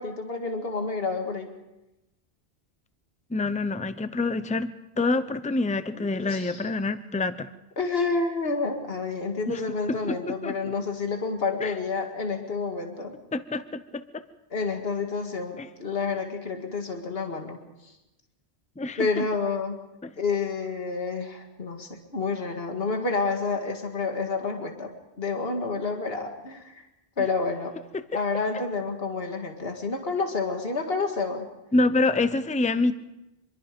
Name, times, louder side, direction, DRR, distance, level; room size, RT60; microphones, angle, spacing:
voice 1, 0.0-1.5 3.3-3.4 5.9-6.6 7.8-13.1 14.5-17.6 19.0-19.8 20.2-26.8 27.2-27.7 28.1-31.5, left 4 dB, 65° left, 3 dB, 2.3 m, -29 dB
voice 2, 3.3-7.5 9.5-9.6 9.9-10.5 11.6-11.7 13.3-14.2 15.6-15.7 18.8-19.2 20.0-20.1 27.9-28.0 31.7-32.9, left 3 dB, 10° left, 12 dB, 0.6 m, -27 dB
26.0 x 22.0 x 5.2 m, 0.95 s
omnidirectional pair, 1.1 m